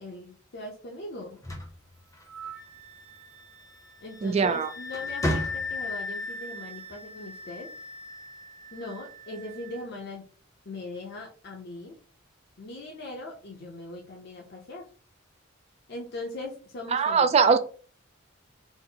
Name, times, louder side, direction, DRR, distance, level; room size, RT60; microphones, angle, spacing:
voice 1, 0.0-1.4 4.0-7.7 8.7-10.2 10.7-12.0 12.6-14.9 15.9-17.3, left 2 dB, 55° left, 0.7 m, -40 dB
sound 1, 1.2-2.8 4.2-4.5 4.9-6.0, equal, 15° left, 0.7 m, -33 dB
Wind instrument woodwind instrument, 2.3-9.8, left 3 dB, 75° right, 1.0 m, -39 dB
voice 2, 4.2-4.7 16.9-17.6, right 5 dB, 30° right, 0.3 m, -21 dB
4.1 x 2.0 x 3.8 m
head